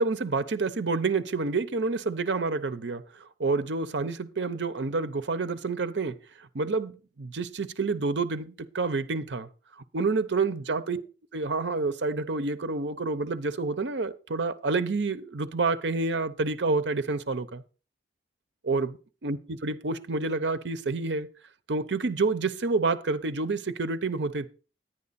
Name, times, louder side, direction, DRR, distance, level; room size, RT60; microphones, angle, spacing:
voice 1, 0.0-6.2 6.5-9.5 9.9-11.0 11.3-17.6 18.6-21.3 21.7-24.5, right 3 dB, 75° right, 0.7 m, -28 dB
10.0 x 9.8 x 4.1 m
head